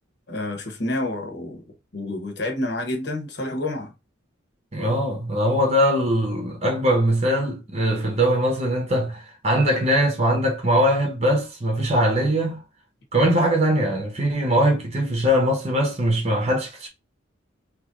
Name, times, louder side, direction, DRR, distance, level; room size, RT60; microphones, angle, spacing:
voice 1, 0.3-1.6 1.9-3.9, left 1 dB, 55° left, 1.0 m, -28 dB
voice 2, 4.7-12.6 13.1-16.9, equal, 30° right, 0.9 m, -21 dB
3.1 x 2.6 x 3.7 m
head